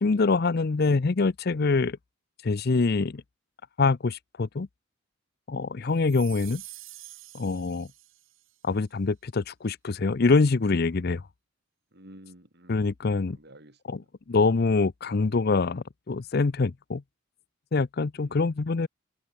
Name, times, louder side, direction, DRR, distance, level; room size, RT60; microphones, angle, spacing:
voice 1, 0.0-2.0 2.4-3.2 3.8-4.7 5.5-6.6 7.3-7.9 8.6-11.2 12.7-13.4 13.9-14.0 14.3-17.0 17.7-18.9, left 4 dB, 50° left, 0.5 m, -25 dB
sound 1, 6.0-8.5, right 16 dB, 75° right, 3.9 m, -47 dB
voice 2, 11.9-13.0 13.4-14.1 18.2-18.7, right 1 dB, 50° right, 4.0 m, -52 dB
head